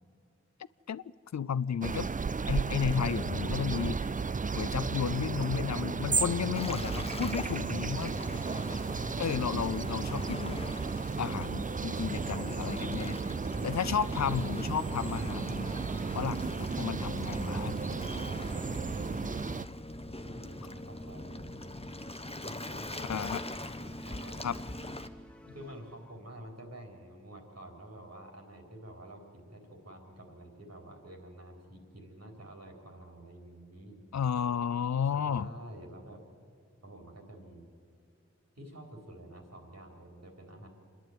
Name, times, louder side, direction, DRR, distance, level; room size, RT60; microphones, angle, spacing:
voice 1, 1.3-2.1 2.5-4.1 4.5-8.1 9.2-10.6 11.2-13.2 13.6-15.7 16.1-18.1 23.1-23.4 24.4-24.5 34.1-35.5, left 7 dB, 70° left, 18 dB, 0.5 m, -33 dB
sound 1, 1.8-19.7, right 4 dB, 30° right, 0.4 m, -34 dB
Waves surf, 6.6-25.1, left 1 dB, 20° left, 1.0 m, -42 dB
voice 2, 18.0-19.2 20.2-21.8 22.4-23.4 23.8-24.6 25.5-34.0 35.1-36.2 36.8-37.7 38.6-40.7, right 1 dB, 60° right, 2 dB, 3.7 m, -49 dB
sound 2, 21.9-26.6, equal, 5° left, 1.2 m, -56 dB
26.5 x 11.0 x 9.2 m, 2.5 s
wide cardioid pair, 60°, 29 cm